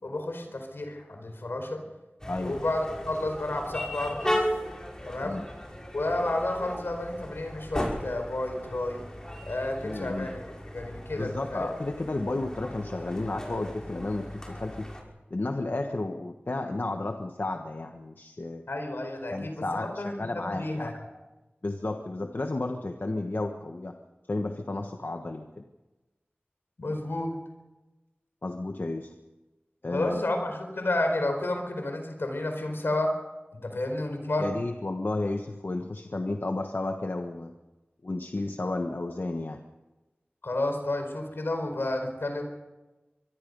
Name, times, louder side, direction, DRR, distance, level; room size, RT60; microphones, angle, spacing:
voice 1, 0.0-1.8 2.4-4.3 5.0-5.4 5.9-9.0 9.5-10.4 10.7-11.7 18.7-21.0 26.8-27.4 29.9-33.1 33.5-34.5 40.4-42.4, left 1 dB, 85° left, 5 dB, 4.6 m, -31 dB
sound 1, 2.2-15.0, equal, 15° left, 6.1 m, -36 dB
voice 2, 9.8-10.3 11.2-14.9 15.3-18.6 19.3-20.9 21.6-23.9 24.3-25.6 28.4-29.1 29.8-30.2 34.4-37.5 38.0-39.6, left 2 dB, 65° left, 5 dB, 1.3 m, -32 dB
25.0 x 22.5 x 5.4 m, 1.1 s
wide cardioid pair, 40°, 4 cm